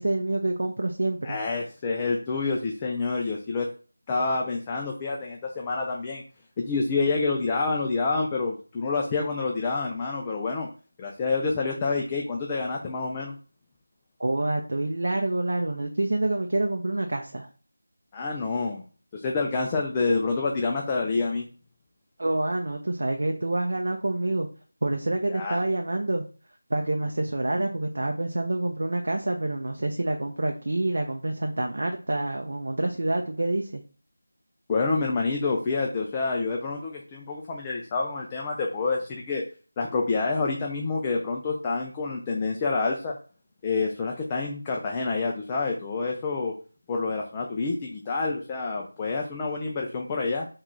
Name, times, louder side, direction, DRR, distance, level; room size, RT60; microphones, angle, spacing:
voice 1, 0.0-1.4 14.2-17.5 22.2-24.5 24.8-26.2 26.7-33.8, right 2 dB, 60° right, 3 dB, 0.5 m, -27 dB
voice 2, 1.2-3.7 4.1-6.2 6.6-10.7 11.0-13.4 18.1-18.8 19.1-21.5 25.3-25.6 34.7-39.4 39.8-43.1 43.6-46.5 46.9-50.5, left 3 dB, 15° left, 0 dB, 0.3 m, -28 dB
3.6 x 2.3 x 3.1 m, 0.38 s
figure-of-eight pair, 170°, 0 cm